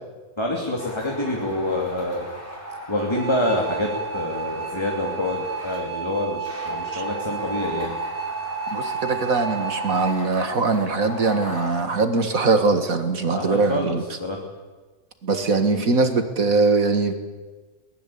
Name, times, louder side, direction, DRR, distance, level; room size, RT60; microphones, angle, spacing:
voice 1, 0.4-2.3 2.9-7.9 13.3-14.4, left 1 dB, 15° left, 0 dB, 2.7 m, -27 dB
sound 1, 0.8-5.8 6.4-11.8, left 1 dB, 10° right, 4.3 m, -36 dB
sound 2, 3.0-10.2, right 8 dB, 40° right, 2.1 m, -32 dB
voice 2, 8.7-14.0 15.2-17.1, right 3 dB, 65° right, 8 dB, 2.3 m, -21 dB
23.0 x 19.5 x 8.6 m, 1.3 s
omnidirectional pair, 1.6 m